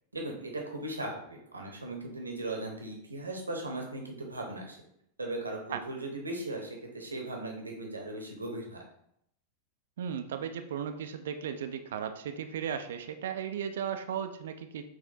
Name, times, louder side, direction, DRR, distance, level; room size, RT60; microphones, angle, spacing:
voice 1, 0.1-4.8 5.2-8.8, right 2 dB, 80° right, 1 dB, 0.8 m, -38 dB
voice 2, 10.0-14.9, right 8 dB, 60° right, 8 dB, 0.3 m, -36 dB
6.2 x 2.5 x 2.6 m, 0.74 s
figure-of-eight pair, 90°, 0 cm